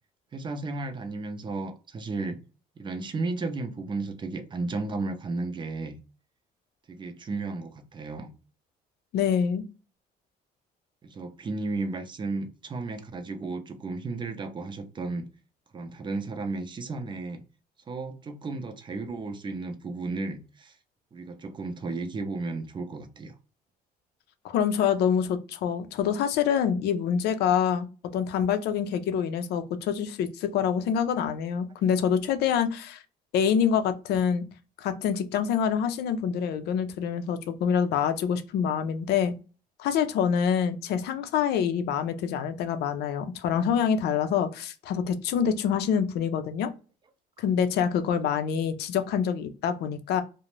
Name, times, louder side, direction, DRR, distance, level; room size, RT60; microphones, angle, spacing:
voice 1, 0.3-2.4 2.8-6.0 6.9-8.3 11.0-15.3 15.7-17.4 17.9-20.8 21.1-23.3, right 3 dB, 25° right, 7 dB, 0.5 m, -34 dB
voice 2, 9.1-9.6 24.4-27.9 28.1-33.0 33.3-34.4 34.8-39.3 39.8-46.7 47.4-50.2, left 8 dB, 75° left, 10 dB, 0.5 m, -26 dB
2.5 x 2.1 x 3.0 m, 0.33 s
cardioid pair, 110°, 17 cm